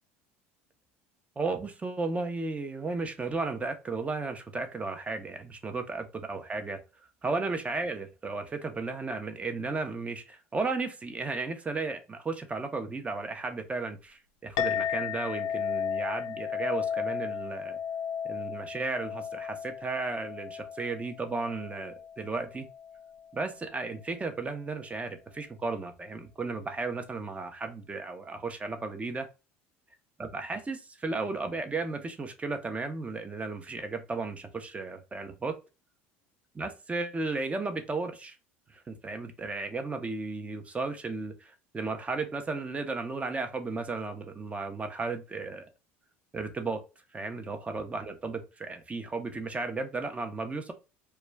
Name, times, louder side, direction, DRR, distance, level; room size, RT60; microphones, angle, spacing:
voice 1, 1.4-6.8 7.2-17.8 18.3-22.7 23.3-29.3 30.2-35.6 36.5-38.4 38.7-45.7 46.3-46.8 47.1-50.7, right 3 dB, 20° right, 0.6 m, -34 dB
Chink clink, 14.6-23.3, left 8 dB, 70° left, 0.4 m, -34 dB
2.2 x 2.2 x 3.2 m
hypercardioid pair, 85°, 6 cm